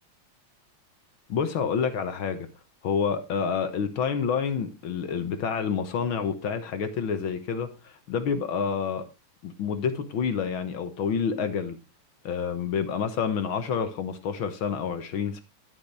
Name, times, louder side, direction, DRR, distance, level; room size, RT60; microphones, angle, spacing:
voice 1, 1.3-2.5 2.8-9.1 9.4-11.8 12.2-15.4, left 6 dB, 60° left, 1.5 m, -28 dB
10.5 x 9.6 x 3.3 m
omnidirectional pair, 3.4 m